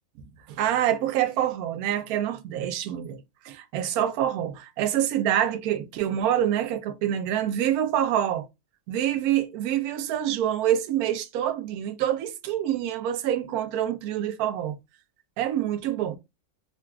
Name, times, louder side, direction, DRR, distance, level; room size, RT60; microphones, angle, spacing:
voice 1, 0.5-8.5 8.9-14.8 15.4-16.2, right 11 dB, 75° right, 1.0 m, -26 dB
3.9 x 2.3 x 2.2 m
omnidirectional pair, 1.6 m